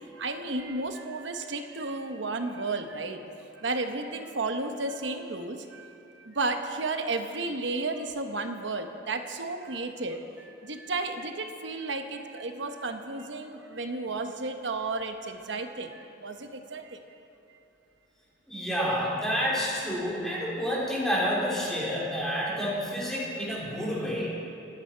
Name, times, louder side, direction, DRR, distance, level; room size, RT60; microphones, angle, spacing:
voice 1, 0.1-3.2 3.6-17.0 21.9-22.5, right 3 dB, 70° right, 6 dB, 1.1 m, -33 dB
voice 2, 18.5-24.3, equal, 5° left, -6 dB, 3.6 m, -29 dB
26.5 x 9.7 x 4.6 m, 2.8 s
head